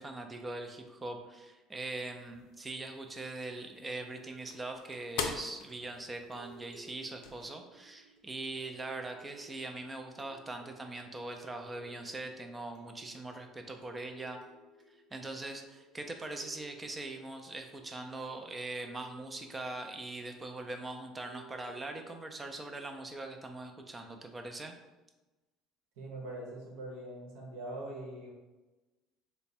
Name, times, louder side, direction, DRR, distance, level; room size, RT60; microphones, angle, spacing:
voice 1, 0.0-14.4 15.1-24.7, right 2 dB, 15° right, 5 dB, 0.3 m, -42 dB
sound 1, 2.1-7.5, left 6 dB, 80° left, 0.4 m, -44 dB
sound 2, 3.9-23.1, right 5 dB, 65° right, 0.8 m, -59 dB
voice 2, 26.0-28.3, right 1 dB, 90° right, -1 dB, 0.9 m, -42 dB
3.3 x 2.1 x 4.2 m, 1.1 s
cardioid pair, 155°, 0 cm